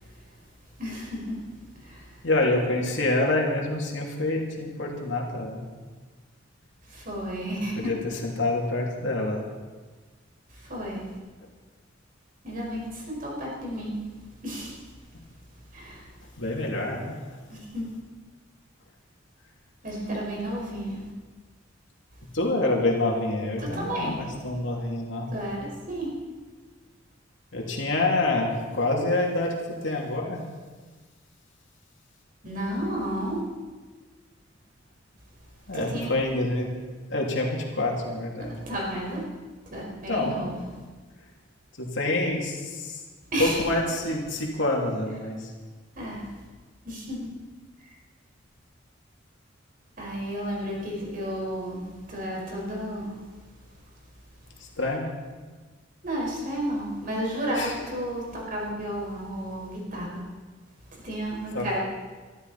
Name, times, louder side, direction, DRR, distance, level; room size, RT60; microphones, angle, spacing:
voice 1, 0.8-1.4 1.8-2.2 6.8-7.9 10.5-11.1 12.4-14.0 14.4-14.7 15.7-16.1 17.5-17.8 19.8-21.0 23.6-24.3 25.3-26.1 32.4-33.4 35.7-36.1 38.4-39.2 39.7-40.7 43.3-43.6 45.9-46.3 46.8-47.3 47.9-48.0 50.0-53.2 56.0-60.1 60.9-61.8, equal, 45° right, -2 dB, 4.9 m, -32 dB
voice 2, 2.2-5.6 7.8-8.0 8.2-9.5 16.4-17.1 22.3-25.3 27.5-29.5 29.8-30.4 35.7-36.7 37.1-38.5 40.1-40.3 41.8-43.0 43.4-45.4 54.8-55.0 57.6-57.7 61.5-61.8, left 2 dB, 70° left, -1 dB, 2.8 m, -27 dB
21.5 x 13.0 x 4.2 m, 1.4 s
head